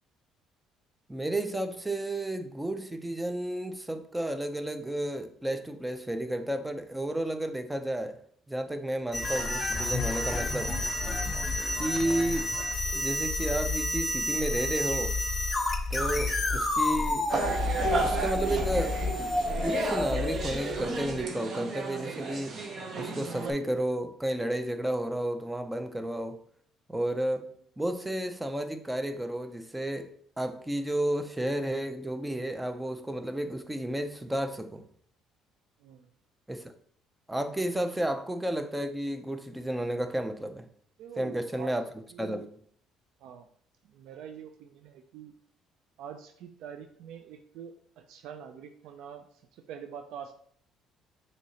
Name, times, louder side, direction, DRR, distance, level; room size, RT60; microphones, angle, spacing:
voice 1, 1.1-8.2 8.5-10.8 11.8-12.6 12.9-15.2 15.9-17.3 18.0-19.1 19.6-22.6 22.9-26.4 26.9-34.8 36.5-36.7 37.3-40.7 41.2-41.8 42.2-42.4, right 1 dB, 10° right, 0.5 m, -32 dB
sound 1, 9.1-21.2, left 2 dB, 25° left, 0.8 m, -30 dB
voice 2, 11.7-12.1 16.1-16.4 35.8-36.1 41.0-41.7 42.1-42.5 43.2-43.5 43.8-45.3 46.0-50.3, right 8 dB, 75° right, 0.3 m, -45 dB
sound 2, 17.3-23.5, right 3 dB, 45° right, 0.7 m, -33 dB
6.0 x 2.8 x 2.8 m
cardioid pair, 95°, 0 cm